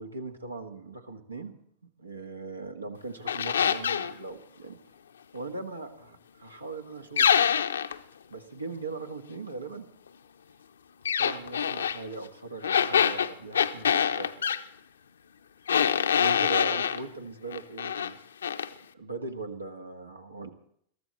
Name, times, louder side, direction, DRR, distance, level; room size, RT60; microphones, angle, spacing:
voice 1, 0.0-1.5 2.0-4.8 5.3-7.4 8.3-9.8 11.2-14.5 16.2-18.2 18.9-20.5, right 3 dB, 80° right, 7 dB, 1.6 m, -39 dB
sound 1, 3.3-4.1 7.2-8.0 11.1-12.0 12.6-14.6 15.7-17.0 17.5-18.1 18.4-18.7, left 8 dB, 70° left, 0.6 m, -25 dB
22.0 x 14.0 x 4.2 m, 0.66 s
figure-of-eight pair, 90°, 0 cm